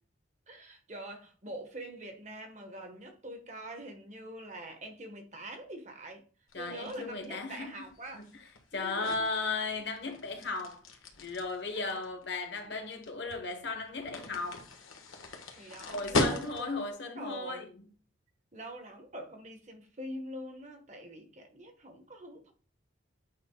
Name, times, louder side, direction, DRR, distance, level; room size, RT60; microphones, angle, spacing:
voice 1, 0.5-6.2 6.6-8.2 8.7-9.2 11.7-12.0 15.3-16.8 17.1-17.7 18.5-22.5, right 1 dB, 35° right, 1.2 m, -44 dB
sound 1, 6.5-16.9, left 2 dB, 90° left, 1.3 m, -38 dB
voice 2, 6.5-7.9 8.1-8.3 8.7-10.8 11.2-14.7 15.9-17.7, left 3 dB, 55° left, 1.2 m, -36 dB
8.7 x 5.1 x 2.3 m
head